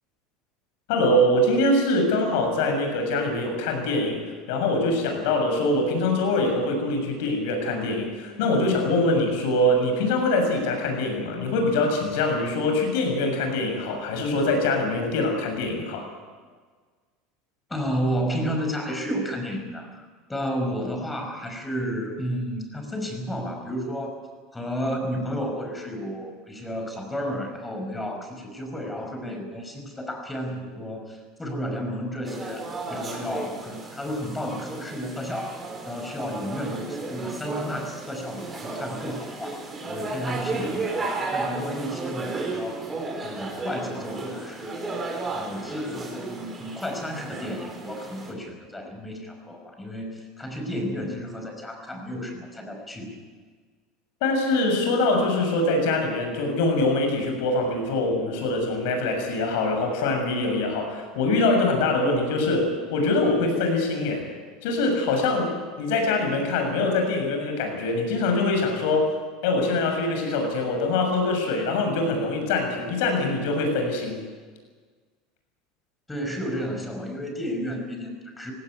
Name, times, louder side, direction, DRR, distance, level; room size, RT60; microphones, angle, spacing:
voice 1, 0.9-4.2 4.5-16.0 54.2-64.2 64.6-65.5 65.8-69.1 69.4-74.2, left 2 dB, 75° left, 3 dB, 6.9 m, -23 dB
voice 2, 17.7-24.2 24.5-35.6 35.9-39.6 39.9-41.0 41.3-42.9 43.2-44.8 45.3-53.2 76.1-78.5, equal, 10° left, 4 dB, 5.6 m, -32 dB
sound 1, 32.2-48.3, right 3 dB, 25° right, 4.9 m, -34 dB
18.0 x 17.5 x 9.5 m, 1.5 s
supercardioid pair, 115°, 0 cm